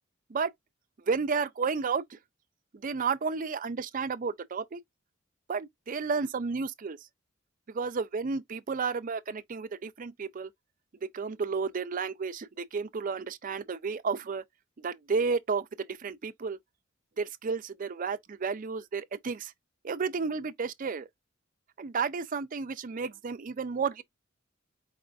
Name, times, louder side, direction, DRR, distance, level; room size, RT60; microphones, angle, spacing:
voice 1, 1.0-2.2 2.8-4.8 5.5-7.0 7.7-10.5 11.0-14.4 14.8-16.6 17.2-19.5 19.8-21.1 21.8-24.0, right 5 dB, 40° right, 0.5 m, -32 dB
4.8 x 3.4 x 2.4 m
head